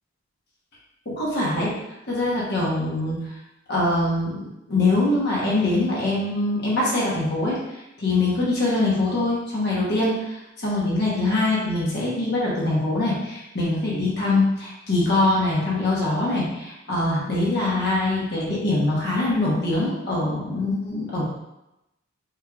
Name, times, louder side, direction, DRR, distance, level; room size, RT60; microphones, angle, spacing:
voice 1, 1.0-1.7 2.1-3.3 3.7-21.3, left 2 dB, 55° left, -6 dB, 1.1 m, -23 dB
4.7 x 3.2 x 2.4 m, 0.91 s
head